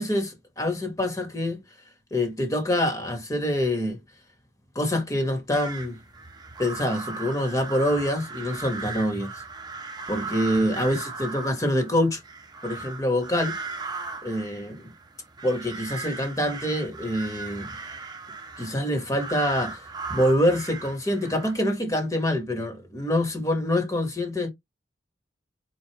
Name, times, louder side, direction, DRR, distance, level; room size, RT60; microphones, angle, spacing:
voice 1, 0.0-1.6 2.1-4.0 4.7-6.0 6.6-9.4 10.1-12.2 12.6-13.6 14.2-14.9 15.4-17.7 18.6-24.5, left 1 dB, 20° left, 1.2 m, -26 dB
sound 1, 5.5-21.8, right 4 dB, 25° right, 0.9 m, -38 dB
4.6 x 3.9 x 2.9 m
head